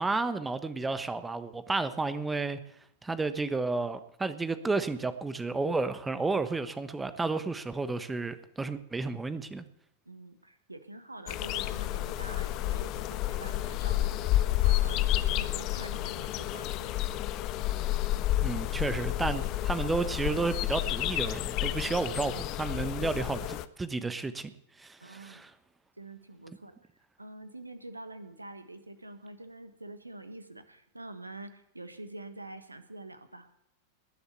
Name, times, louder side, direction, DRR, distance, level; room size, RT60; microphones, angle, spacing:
voice 1, 0.0-2.6 3.0-9.6 18.4-24.5 24.8-25.5, right 3 dB, 10° right, 12 dB, 1.2 m, -32 dB
voice 2, 10.0-17.0 25.0-25.4 26.0-26.7 27.2-33.5, right 2 dB, 85° right, 10 dB, 1.4 m, -46 dB
sound 1, 11.3-23.7, left 14 dB, 40° left, 0.7 m, -30 dB
20.0 x 7.0 x 8.3 m, 0.75 s
figure-of-eight pair, 90°, 0 cm